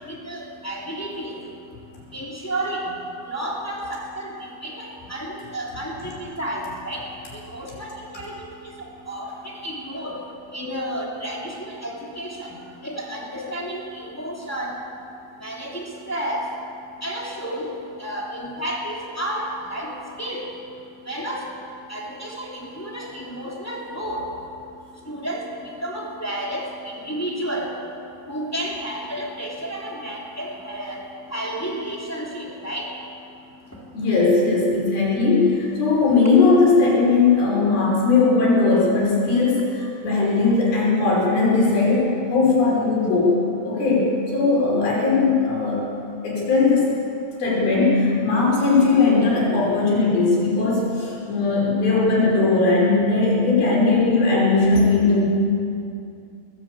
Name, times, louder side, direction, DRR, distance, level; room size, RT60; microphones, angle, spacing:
voice 1, 0.1-1.4 2.1-2.9 3.3-7.0 7.3-8.5 9.1-10.2 10.5-12.6 12.8-14.7 15.4-16.4 17.0-20.5 21.1-21.4 21.9-24.3 25.1-25.5 25.8-26.7 26.9-27.7 28.3-31.0 31.3-32.9 52.1-52.3, right 1 dB, 5° left, -3 dB, 2.5 m, -31 dB
voice 2, 33.9-43.4 43.6-45.9 46.2-46.9 47.4-55.2, left 3 dB, 75° left, -5 dB, 7.2 m, -19 dB
20.5 x 15.0 x 8.5 m, 2.5 s
omnidirectional pair, 4.3 m